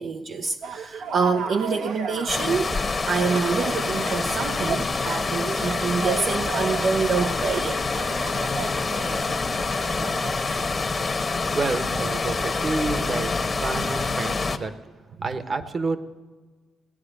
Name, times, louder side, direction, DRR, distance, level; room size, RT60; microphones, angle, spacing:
voice 1, 0.0-2.7 3.1-7.9 8.6-8.7 10.5-10.7, right 5 dB, 60° right, 4 dB, 0.7 m, -26 dB
sound 1, 0.6-10.3, right 4 dB, 75° right, 1.3 m, -35 dB
sound 2, 2.3-14.6, left 3 dB, 30° left, 1.2 m, -26 dB
voice 2, 11.5-14.7 15.2-16.0, right 3 dB, 40° right, 10 dB, 1.2 m, -29 dB
17.5 x 9.7 x 6.7 m, 1.3 s
cardioid pair, 90°, 0 cm